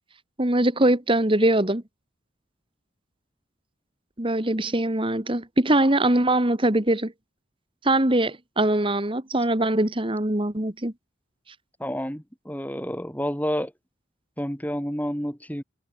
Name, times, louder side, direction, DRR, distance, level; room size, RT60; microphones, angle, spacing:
voice 1, 0.4-1.8 4.2-7.1 7.8-10.9, right 1 dB, 25° right, 1.9 m, -22 dB
voice 2, 11.8-13.7 14.4-15.6, equal, 10° left, 6.9 m, -29 dB
head